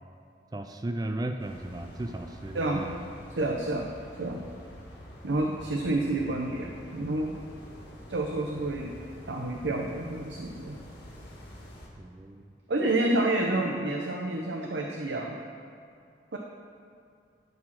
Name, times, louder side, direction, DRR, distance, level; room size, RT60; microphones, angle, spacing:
voice 1, 0.5-3.0 12.0-12.5, right 1 dB, 20° right, 6 dB, 0.4 m, -35 dB
sound 1, 1.4-11.9, equal, 70° left, 2.3 m, -47 dB
voice 2, 2.5-2.9 3.3-3.9 4.2-4.4 5.2-7.3 8.1-8.9 9.3-10.8 12.7-15.4 16.3-16.4, right 2 dB, 80° right, 1 dB, 0.8 m, -29 dB
12.5 x 4.8 x 6.0 m, 2.4 s
head